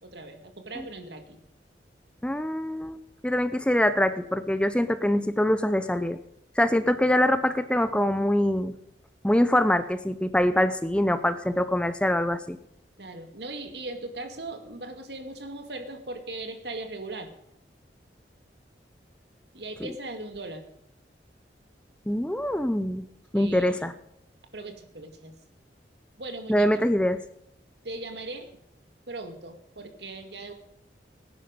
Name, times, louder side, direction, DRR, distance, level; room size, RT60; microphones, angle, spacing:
voice 1, 0.0-1.4 13.0-17.3 19.5-20.7 23.3-23.8 24.5-25.3 26.2-26.9 27.8-28.5 29.1-30.5, right 2 dB, 70° right, 6 dB, 2.2 m, -39 dB
voice 2, 2.2-6.2 6.6-8.7 9.2-12.6 19.8-19.9 22.1-23.0 23.3-23.9 26.5-27.2, left 1 dB, 5° left, 11 dB, 0.6 m, -24 dB
18.5 x 10.0 x 5.2 m, 0.76 s
head